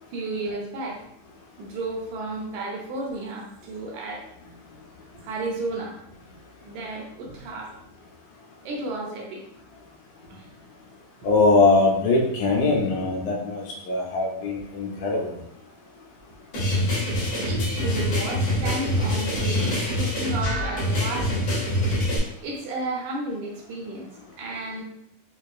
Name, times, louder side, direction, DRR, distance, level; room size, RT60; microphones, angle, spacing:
voice 1, 0.1-1.0 1.6-4.3 5.1-6.0 6.6-7.8 8.6-9.4 10.3-10.5 17.5-21.5 22.4-24.1 24.4-24.8, right 2 dB, 75° right, -1 dB, 1.9 m, -33 dB
voice 2, 11.2-15.3, left 3 dB, 80° left, 0 dB, 1.9 m, -21 dB
sound 1, 16.5-22.2, left 1 dB, 60° left, 1.3 m, -25 dB
5.2 x 2.4 x 2.3 m, 0.77 s
omnidirectional pair, 3.6 m